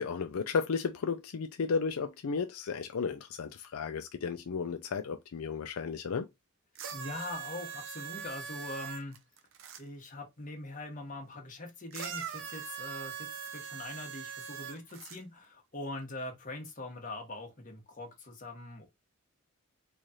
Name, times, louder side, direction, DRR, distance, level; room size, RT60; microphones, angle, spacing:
voice 1, 0.0-6.3, left 5 dB, 80° left, 0.5 m, -33 dB
sound 1, 6.7-9.8 11.9-15.2 16.1-16.2, right 7 dB, 60° right, 0.6 m, -42 dB
voice 2, 6.9-9.2 9.8-13.3 13.5-18.9, left 2 dB, 40° left, 1.2 m, -42 dB
3.2 x 2.4 x 4.1 m
head